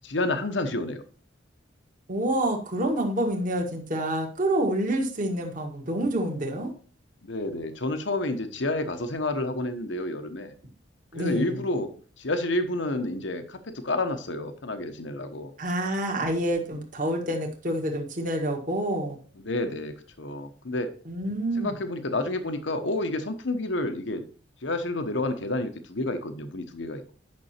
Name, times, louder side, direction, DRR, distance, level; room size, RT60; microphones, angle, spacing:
voice 1, 0.0-1.0 7.2-10.5 11.1-15.5 19.3-20.9 21.5-24.2 24.6-27.1, left 2 dB, 70° left, 8 dB, 1.1 m, -30 dB
voice 2, 2.1-6.7 11.1-11.6 15.6-19.2 21.1-21.7, right 1 dB, 45° right, 1 dB, 1.8 m, -27 dB
9.6 x 6.1 x 4.4 m, 0.40 s
head